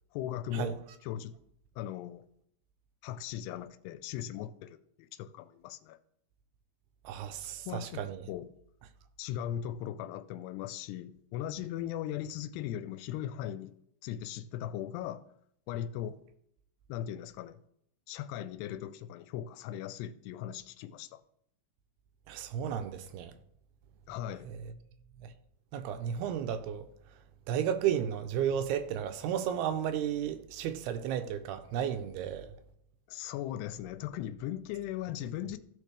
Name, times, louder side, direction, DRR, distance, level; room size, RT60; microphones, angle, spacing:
voice 1, 0.1-0.8 1.0-1.3 1.8-2.2 3.0-6.0 7.7-8.0 8.3-8.5 9.2-13.7 14.0-15.2 15.7-16.2 16.9-17.6 18.1-21.2 24.1-24.5 33.1-35.6, left 11 dB, 85° left, 2.6 m, -38 dB
voice 2, 7.1-8.2 22.3-23.3 24.5-24.6 25.2-25.3 25.7-26.9 27.5-32.5, right 9 dB, 80° right, 2.5 m, -33 dB
15.0 x 5.1 x 3.3 m
omnidirectional pair, 4.7 m